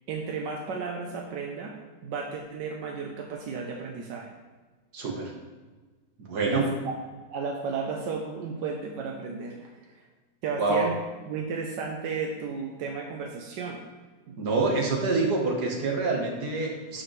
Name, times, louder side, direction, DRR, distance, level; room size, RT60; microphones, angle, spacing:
voice 1, 0.1-1.8 2.0-4.3 6.4-6.9 7.3-10.1 10.4-10.9 11.3-13.8 14.3-14.4, right 5 dB, 85° right, 1 dB, 1.4 m, -34 dB
voice 2, 4.9-5.3 6.2-6.7 10.6-10.8 14.4-17.0, right 3 dB, 70° right, 0 dB, 1.9 m, -26 dB
12.0 x 5.1 x 3.2 m, 1.3 s
omnidirectional pair, 1.9 m